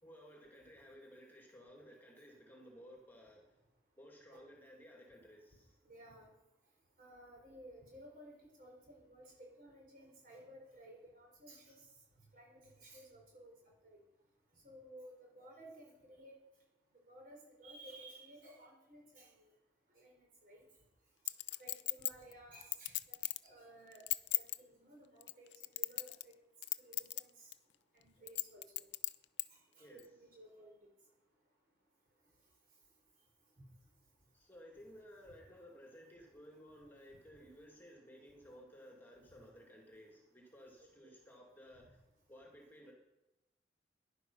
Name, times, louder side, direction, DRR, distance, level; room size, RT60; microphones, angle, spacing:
voice 1, 0.0-3.4 4.0-5.7 29.8-30.0 34.3-42.0 42.3-42.9, equal, 10° left, 0 dB, 2.3 m, -57 dB
voice 2, 5.8-6.3 7.0-11.8 12.3-13.5 13.9-14.0 14.6-16.4 17.1-19.5 19.9-20.6 21.6-24.1 24.3-26.3 26.8-27.5 27.9-28.8 29.8-30.7 40.8-41.1, right 1 dB, 50° right, -1 dB, 4.6 m, -56 dB
Chink clink, 21.3-23.5 23.9-24.6 25.2-26.3 26.6-27.2 27.5-27.6 28.3-29.5 30.0-30.1, left 18 dB, 85° left, 0.5 m, -36 dB
18.0 x 11.5 x 5.4 m, 0.98 s
head